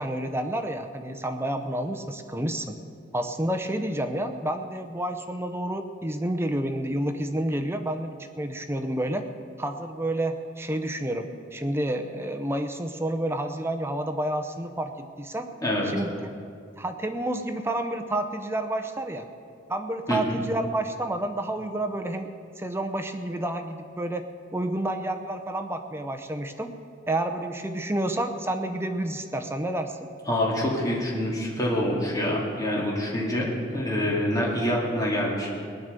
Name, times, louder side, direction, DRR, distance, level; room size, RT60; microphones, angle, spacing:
voice 1, 0.0-2.7 3.1-9.2 9.6-14.9 15.2-15.5 15.9-16.3 16.8-19.3 19.7-22.3 22.6-24.3 24.5-26.7 27.1-29.9, right 1 dB, 15° right, 7 dB, 0.7 m, -29 dB
voice 2, 30.3-35.6, left 1 dB, 20° left, -4 dB, 2.5 m, -26 dB
19.0 x 10.5 x 6.8 m, 2.3 s
head